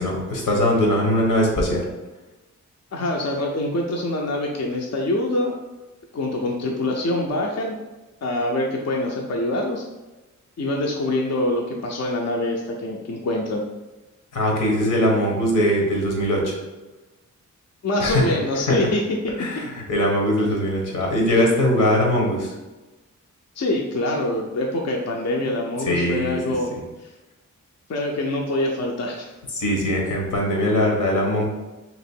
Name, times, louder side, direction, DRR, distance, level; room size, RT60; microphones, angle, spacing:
voice 1, 0.0-1.8 14.3-16.6 18.0-18.2 18.7-18.8 19.4-22.5 25.8-26.4 29.5-31.4, equal, 85° left, -1 dB, 1.2 m, -21 dB
voice 2, 2.9-5.5 6.1-7.8 8.2-9.8 10.6-13.6 17.8-19.0 23.6-26.7 27.9-29.3, left 1 dB, 55° left, 0 dB, 0.6 m, -25 dB
3.0 x 3.0 x 4.4 m, 1.1 s
wide cardioid pair, 100°, 31 cm